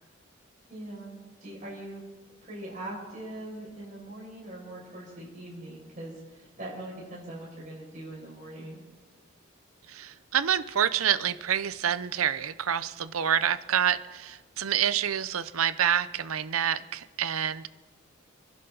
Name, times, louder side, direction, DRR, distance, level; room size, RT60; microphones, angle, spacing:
voice 1, 0.7-2.0 2.4-8.8, right 1 dB, 40° right, -6 dB, 5.8 m, -41 dB
voice 2, 9.9-17.7, right 9 dB, 90° right, 14 dB, 0.6 m, -27 dB
28.5 x 11.0 x 3.9 m, 1.3 s
head